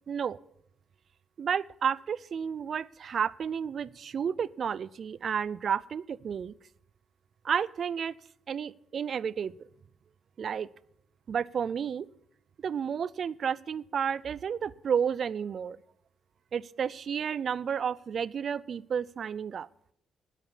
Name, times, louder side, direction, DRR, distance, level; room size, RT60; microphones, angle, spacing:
voice 1, 0.1-0.4 1.4-6.5 7.4-8.2 8.5-9.5 10.4-10.7 11.3-12.1 12.6-15.8 16.5-19.7, right 7 dB, 55° right, 21 dB, 0.4 m, -31 dB
9.9 x 8.3 x 8.4 m, 0.74 s
cardioid pair, 90°, 0 cm